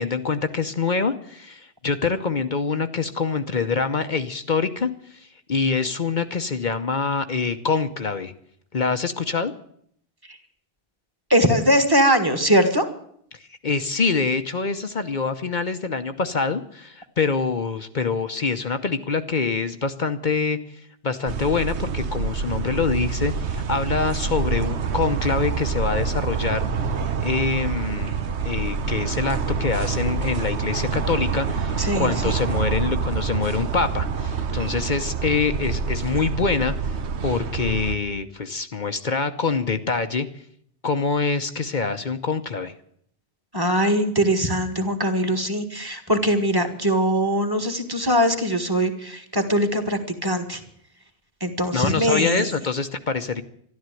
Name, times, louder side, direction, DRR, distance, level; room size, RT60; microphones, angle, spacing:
voice 1, 0.0-8.3 8.7-9.5 13.3-20.6 21.0-26.6 27.2-28.2 28.4-37.0 37.2-40.3 40.8-42.7 51.7-53.4, left 4 dB, 50° left, 9 dB, 1.0 m, -25 dB
voice 2, 11.3-12.9 31.8-32.3 43.5-50.6 51.4-52.5, equal, 20° right, 7 dB, 1.8 m, -21 dB
sound 1, 21.3-38.0, right 5 dB, 90° right, 1.3 m, -26 dB
13.0 x 12.5 x 9.1 m, 0.67 s
omnidirectional pair, 1.1 m